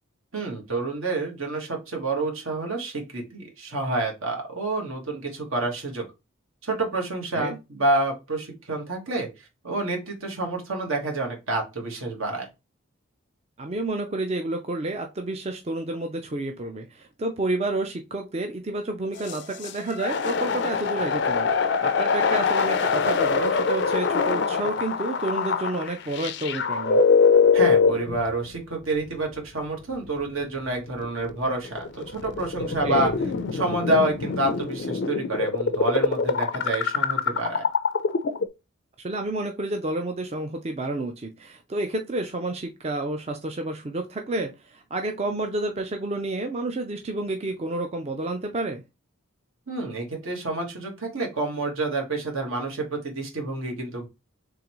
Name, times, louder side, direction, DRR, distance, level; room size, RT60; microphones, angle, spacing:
voice 1, 0.3-6.0 6.6-9.3 9.6-12.5 27.5-33.1 33.5-37.7 49.7-54.1, right 2 dB, 75° right, 1 dB, 1.5 m, -28 dB
voice 2, 13.6-27.0 32.8-33.1 39.0-48.8, right 2 dB, 30° right, 5 dB, 0.4 m, -30 dB
sound 1, 19.2-28.5 29.2-29.3 30.9-38.5, left 5 dB, 55° left, 0.4 m, -23 dB
3.8 x 3.3 x 3.0 m, 0.25 s
head